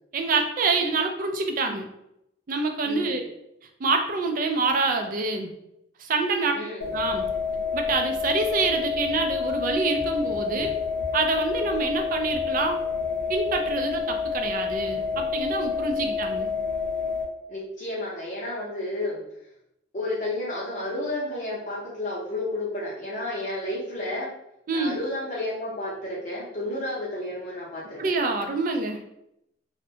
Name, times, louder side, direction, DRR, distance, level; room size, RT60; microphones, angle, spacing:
voice 1, 0.1-1.8 2.5-3.2 3.8-5.5 6.0-6.5 6.9-7.2 7.7-10.7 11.1-12.8 13.3-16.5 24.7-25.0 28.0-29.0, right 3 dB, 45° right, 5 dB, 0.3 m, -26 dB
voice 2, 2.8-3.2 6.5-7.0 17.5-19.2 19.9-24.3 24.7-28.0, left 1 dB, 40° left, -7 dB, 0.6 m, -31 dB
sound 1, 6.8-17.2, left 5 dB, 80° left, 0.5 m, -28 dB
2.6 x 2.1 x 2.7 m, 0.81 s
head